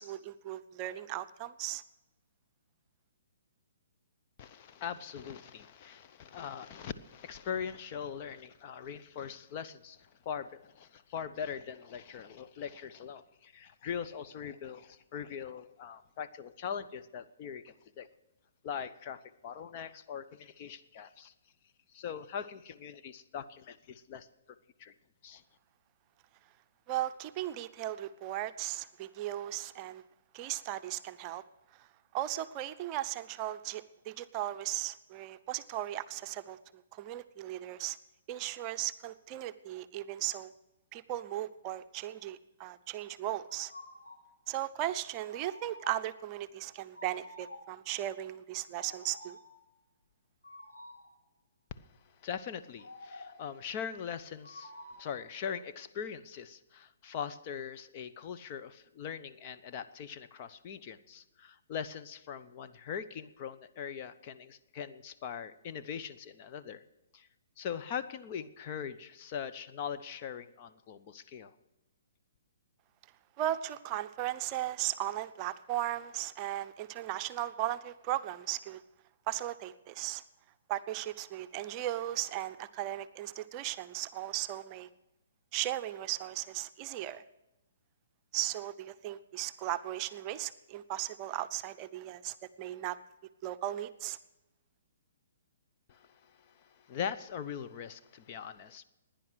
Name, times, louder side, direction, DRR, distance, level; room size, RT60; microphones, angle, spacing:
voice 1, 0.0-1.8 26.9-30.0 30.3-31.4 31.8-31.9 32.1-36.6 36.9-38.0 38.3-40.5 40.9-43.7 44.5-49.4 73.4-78.8 79.3-80.2 80.7-84.9 85.5-87.2 88.3-93.0 93.4-94.2, right 14 dB, 30° right, 10 dB, 0.7 m, -37 dB
voice 2, 4.4-18.1 18.6-21.3 21.9-24.3 24.8-24.9 25.2-25.4 52.2-66.8 67.1-67.3 67.6-71.5 95.9-98.8, left 7 dB, 40° left, 10 dB, 0.8 m, -41 dB
sound 1, 43.5-44.3 45.3-46.2 46.9-47.8 48.7-49.6 50.4-51.1 52.8-53.5 54.4-55.2, left 1 dB, 85° left, 5.3 m, -50 dB
16.5 x 10.5 x 6.3 m, 0.97 s
hypercardioid pair, 135°, 0 cm